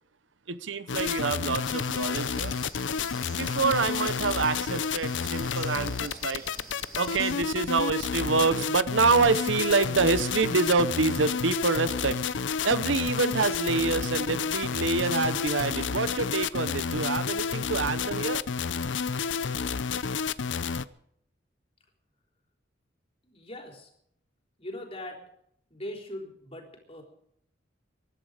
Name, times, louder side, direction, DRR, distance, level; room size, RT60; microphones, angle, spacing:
voice 1, 0.5-2.5 3.3-6.4 7.0-12.2 12.6-18.4, right 4 dB, 75° right, 14 dB, 0.9 m, -26 dB
sound 1, 0.9-20.8, left 6 dB, 70° left, 0.6 m, -30 dB
sound 2, 1.6-7.3, right 1 dB, 15° right, 7.4 m, -47 dB
voice 2, 23.2-23.9 24.6-25.2 25.7-27.0, left 1 dB, 30° left, 2 dB, 3.8 m, -40 dB
23.0 x 11.5 x 5.0 m, 0.71 s
head